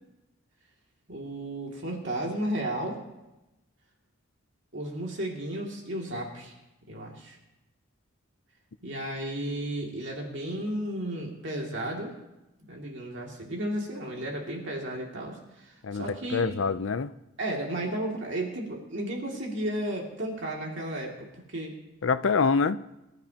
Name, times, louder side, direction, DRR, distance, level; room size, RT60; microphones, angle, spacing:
voice 1, 1.1-3.0 4.7-6.5 6.9-7.4 8.8-12.1 12.6-16.6 17.4-21.7, right 1 dB, 60° right, 2.5 m, -33 dB
voice 2, 15.8-17.1 22.0-22.8, left 5 dB, 70° left, 0.5 m, -25 dB
24.0 x 12.5 x 2.9 m
head